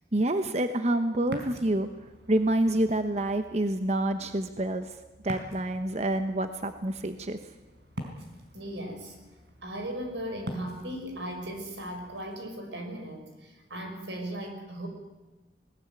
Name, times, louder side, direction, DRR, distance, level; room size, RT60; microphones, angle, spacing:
voice 1, 0.1-1.9 2.3-4.9 5.2-7.4, right 1 dB, 40° right, 8 dB, 1.0 m, -27 dB
Ocean, 1.2-12.4, equal, 65° right, 4.4 m, -46 dB
voice 2, 8.5-9.1 9.6-14.9, right 1 dB, 90° right, 5 dB, 5.8 m, -37 dB
20.5 x 19.5 x 9.2 m, 1.2 s
head